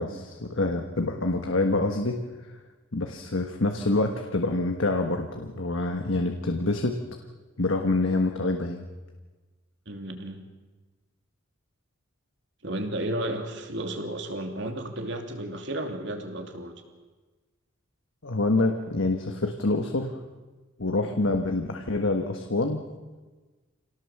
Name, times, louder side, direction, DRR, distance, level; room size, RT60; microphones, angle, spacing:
voice 1, 0.0-2.2 2.9-7.0 7.6-8.9 18.2-20.1 20.8-22.8, left 2 dB, 70° left, 4 dB, 1.5 m, -26 dB
voice 2, 9.9-10.4 12.6-16.7, right 1 dB, 60° right, 4 dB, 2.8 m, -33 dB
27.0 x 18.0 x 7.3 m, 1.3 s
head